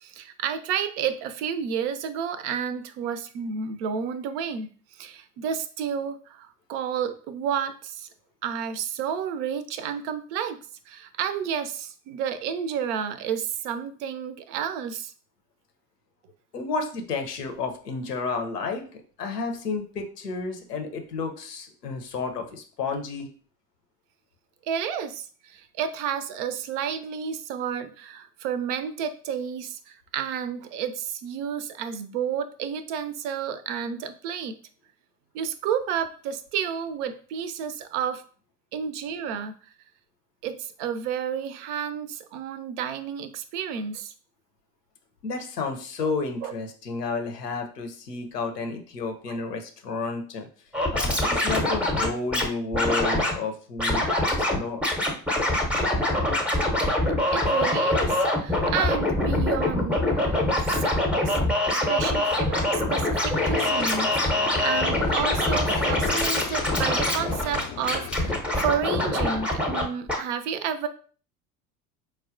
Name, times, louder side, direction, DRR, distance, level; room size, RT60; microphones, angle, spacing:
voice 1, 0.0-4.7 5.0-8.1 8.4-10.6 10.9-15.1 24.7-34.6 35.3-38.2 38.7-39.5 40.4-44.1 46.0-46.1 46.4-46.5 49.3-49.5 57.3-60.1 60.6-60.9 61.2-70.9, right 7 dB, 50° right, 11 dB, 0.5 m, -31 dB
voice 2, 16.5-23.3 45.2-50.5 50.9-54.9, left 4 dB, 85° left, 5 dB, 0.7 m, -31 dB
Scratching (performance technique), 50.7-52.5 52.7-53.3 53.8-54.6 54.8-69.8 70.1-70.2, left 1 dB, 5° right, 0.6 m, -24 dB
sound 1, 63.3-68.3, left 8 dB, 40° left, 0.4 m, -38 dB
4.4 x 2.1 x 2.5 m, 0.41 s
figure-of-eight pair, 70°, 46 cm